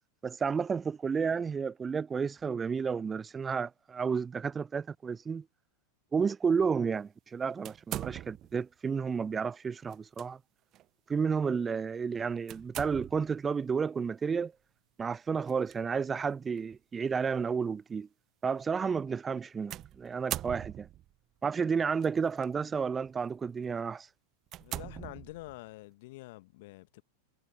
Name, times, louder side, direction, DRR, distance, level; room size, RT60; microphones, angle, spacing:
voice 1, 0.2-5.4 6.1-10.4 11.1-14.5 15.0-18.1 18.4-20.9 21.4-24.1, right 6 dB, 15° right, 0.5 m, -31 dB
sound 1, 7.6-8.6 9.9-10.3 10.7-10.9 12.5-13.4 15.4-15.8 16.6-16.7 19.7-21.1 22.0-22.5 23.0-23.2 23.8-23.9 24.5-25.7, right 13 dB, 35° right, 1.1 m, -41 dB
voice 2, 24.6-27.0, left 21 dB, 50° left, 1.5 m, -47 dB
figure-of-eight pair, 90°, 0 cm